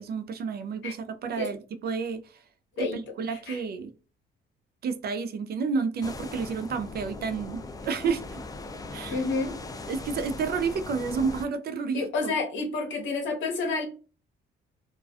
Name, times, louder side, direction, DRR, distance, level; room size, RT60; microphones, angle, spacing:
voice 1, 0.0-2.2 2.8-3.9 4.8-8.4 8.9-9.2 9.9-12.3, right 5 dB, 50° right, 0.4 m, -30 dB
voice 2, 3.3-3.6 9.1-9.5 11.9-13.8, left 3 dB, 70° left, 1.0 m, -29 dB
sound 1, 6.0-11.5, left 2 dB, 20° left, 0.3 m, -39 dB
2.4 x 2.2 x 2.3 m
cardioid pair, 90°, 20 cm